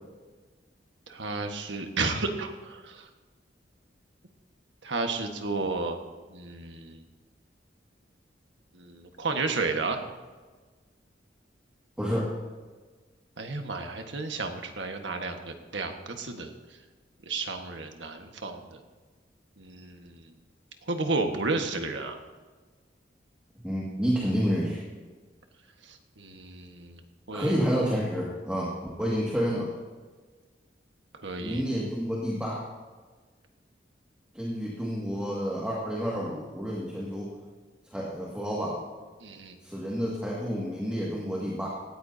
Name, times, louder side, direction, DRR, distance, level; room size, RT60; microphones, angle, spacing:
voice 1, 1.1-3.1 4.8-6.0 6.3-7.0 8.7-10.0 13.4-16.5 17.2-18.6 19.6-20.2 20.9-22.2 25.9-27.0 27.3-27.6 31.1-31.7 39.2-39.6, right 3 dB, 90° right, 4 dB, 1.5 m, -32 dB
voice 2, 12.0-12.3 23.6-24.8 27.3-29.7 31.4-32.7 34.3-37.3 37.9-38.8 39.6-41.7, equal, 5° right, -5 dB, 2.0 m, -29 dB
18.0 x 14.0 x 2.8 m, 1.4 s
head